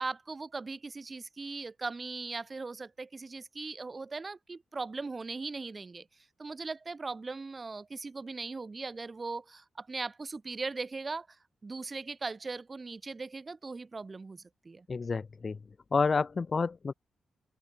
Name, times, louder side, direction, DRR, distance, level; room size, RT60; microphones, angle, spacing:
voice 1, 0.0-6.1 6.4-11.4 11.6-14.9, right 3 dB, 20° right, 2.7 m, -39 dB
voice 2, 14.9-15.6 15.9-16.9, left 4 dB, 30° left, 0.4 m, -29 dB
open air
wide cardioid pair, 170°, 0 cm